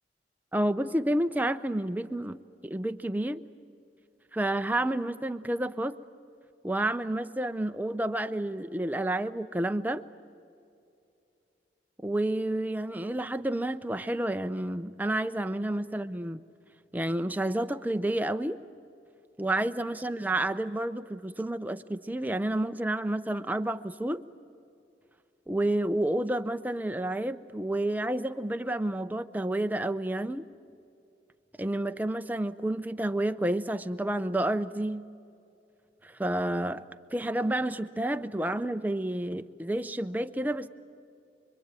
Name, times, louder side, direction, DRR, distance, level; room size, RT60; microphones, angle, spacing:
voice 1, 0.5-2.4 2.6-3.4 4.3-6.0 6.6-10.0 12.0-16.4 16.9-18.6 19.4-24.2 25.5-30.4 31.6-35.0 36.0-36.8 37.1-40.7, right 1 dB, 10° right, 9 dB, 0.6 m, -30 dB
25.5 x 24.5 x 9.0 m, 2.6 s
head